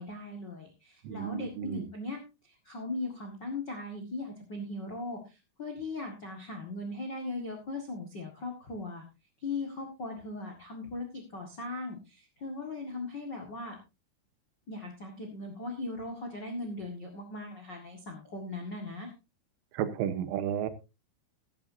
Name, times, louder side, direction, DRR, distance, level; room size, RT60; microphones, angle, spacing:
voice 1, 0.0-9.0 9.4-13.7 14.7-19.1, left 2 dB, 60° left, 3 dB, 1.1 m, -39 dB
voice 2, 1.1-1.8 19.7-20.7, right 9 dB, 85° right, 11 dB, 3.7 m, -32 dB
15.0 x 12.5 x 2.8 m, 0.27 s
omnidirectional pair, 5.5 m